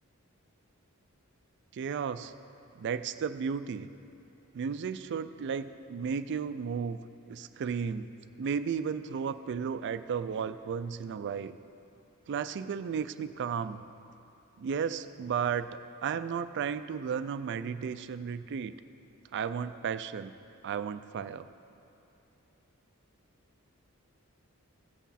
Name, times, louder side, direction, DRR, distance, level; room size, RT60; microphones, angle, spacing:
voice 1, 1.7-2.3 2.8-3.9 4.5-7.0 7.3-8.1 8.4-11.6 12.3-13.8 14.6-15.7 16.0-18.7 19.3-20.3 20.6-21.5, right 6 dB, 55° right, 12 dB, 0.3 m, -34 dB
16.0 x 6.0 x 4.2 m, 2.7 s
head